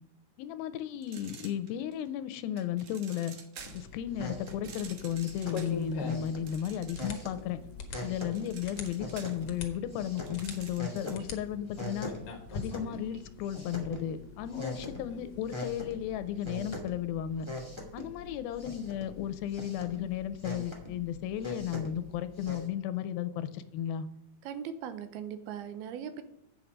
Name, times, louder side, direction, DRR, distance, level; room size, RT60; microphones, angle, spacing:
voice 1, 0.4-3.3 3.7-7.6 8.0-12.1 12.5-17.5 17.9-24.1, left 10 dB, 80° left, 12 dB, 2.3 m, -34 dB
sound 1, 1.0-2.1 2.6-3.9 4.5-7.4 7.7-11.3, right 6 dB, 60° right, 2.3 m, -50 dB
sound 2, 3.6-22.6, left 1 dB, 25° right, 0.5 m, -43 dB
sound 3, 4.1-16.8, left 4 dB, 65° left, 1.4 m, -45 dB
voice 2, 24.4-26.2, right 8 dB, 85° right, 10 dB, 2.8 m, -39 dB
8.2 x 7.3 x 5.2 m, 0.78 s
omnidirectional pair, 4.4 m